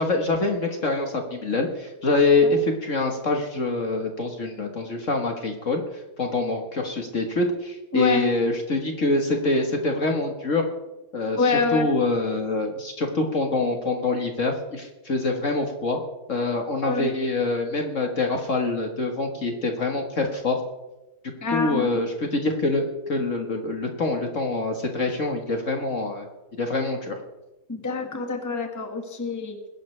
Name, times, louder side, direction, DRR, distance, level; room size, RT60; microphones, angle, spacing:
voice 1, 0.0-5.8 6.2-10.6 11.1-16.0 16.3-20.6 21.5-26.3 26.6-27.2, left 2 dB, 45° left, 3 dB, 1.6 m, -25 dB
voice 2, 7.9-8.3 11.4-11.9 16.8-17.1 21.4-22.0 27.7-29.6, left 4 dB, 10° left, 4 dB, 1.4 m, -26 dB
21.5 x 11.5 x 3.3 m, 1.0 s
omnidirectional pair, 2.0 m